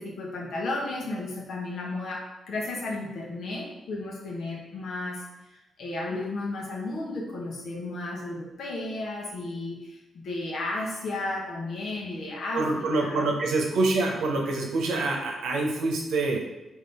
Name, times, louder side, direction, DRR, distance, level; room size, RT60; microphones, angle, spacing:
voice 1, 0.0-5.2 5.8-13.3, left 2 dB, 70° left, -2 dB, 1.1 m, -33 dB
voice 2, 12.5-16.4, right 2 dB, 75° right, 0 dB, 0.8 m, -26 dB
3.8 x 2.9 x 3.4 m, 1.0 s
hypercardioid pair, 45°, 0 cm